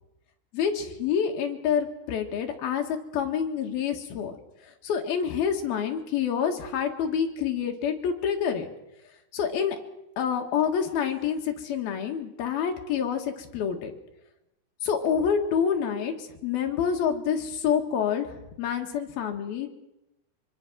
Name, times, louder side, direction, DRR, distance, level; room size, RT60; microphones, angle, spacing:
voice 1, 0.5-4.4 4.6-8.7 9.3-9.8 10.2-13.9 14.8-19.7, left 7 dB, 65° left, 3 dB, 3.3 m, -27 dB
24.5 x 24.0 x 6.2 m, 0.90 s
omnidirectional pair, 5.3 m